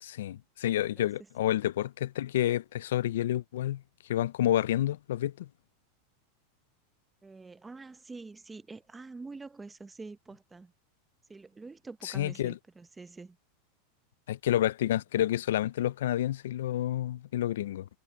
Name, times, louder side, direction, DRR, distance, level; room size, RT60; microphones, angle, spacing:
voice 1, 0.0-3.8 4.1-5.5 12.0-12.5 14.3-17.9, left 12 dB, 85° left, 0.4 m, -29 dB
voice 2, 7.2-10.7 11.3-13.4, right 3 dB, 10° right, 0.8 m, -46 dB
supercardioid pair, 160°, 0 cm